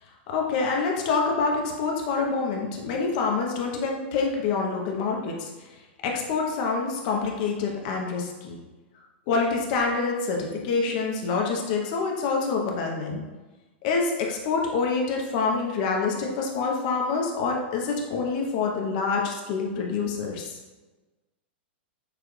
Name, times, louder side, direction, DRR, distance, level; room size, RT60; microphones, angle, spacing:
voice 1, 0.3-5.5 6.0-8.6 9.3-13.2 13.8-20.6, left 4 dB, 45° left, 0 dB, 0.9 m, -26 dB
6.7 x 2.4 x 3.3 m, 1.2 s
hypercardioid pair, 145°, 6 cm